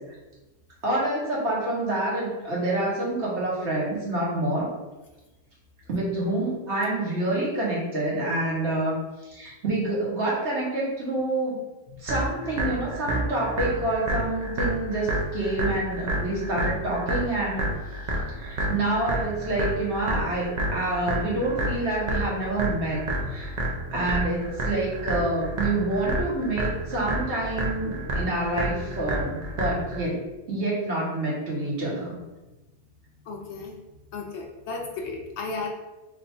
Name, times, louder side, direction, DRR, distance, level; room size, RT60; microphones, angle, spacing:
voice 1, 0.8-4.7 5.9-9.0 9.2-11.6 12.0-17.7 18.3-23.0 23.3-23.5 23.9-30.2 30.5-32.2, right 2 dB, 50° right, -6 dB, 1.4 m, -27 dB
sound 1, 12.1-30.1, right 1 dB, 85° right, 0.3 m, -29 dB
voice 2, 33.3-33.8 34.1-35.7, left 4 dB, 65° left, 0 dB, 0.7 m, -34 dB
3.3 x 2.6 x 4.2 m, 1.1 s
omnidirectional pair, 1.6 m